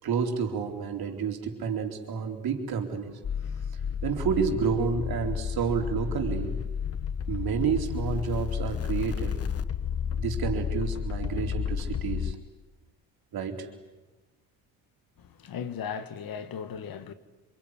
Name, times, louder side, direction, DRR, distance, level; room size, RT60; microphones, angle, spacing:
voice 1, 0.0-3.2 4.0-6.6 7.3-9.4 10.2-12.4 13.3-13.7, right 6 dB, 60° right, 4.0 m, -30 dB
sound 1, 3.2-12.3, left 8 dB, 35° left, 1.0 m, -31 dB
voice 2, 15.2-17.1, left 7 dB, 55° left, 2.1 m, -37 dB
26.5 x 23.0 x 9.9 m
supercardioid pair, 70°, 41 cm